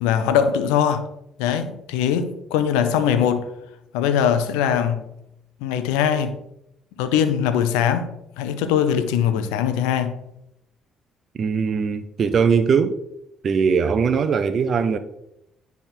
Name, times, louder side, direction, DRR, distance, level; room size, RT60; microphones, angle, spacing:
voice 1, 0.0-1.1 1.4-3.5 3.9-5.0 5.6-6.4 7.0-8.1 8.4-10.2, left 8 dB, 90° left, 0.6 m, -21 dB
voice 2, 11.4-13.0 13.4-15.0, right 6 dB, 55° right, 0.6 m, -20 dB
9.8 x 3.5 x 4.5 m
supercardioid pair, 60°, 0 cm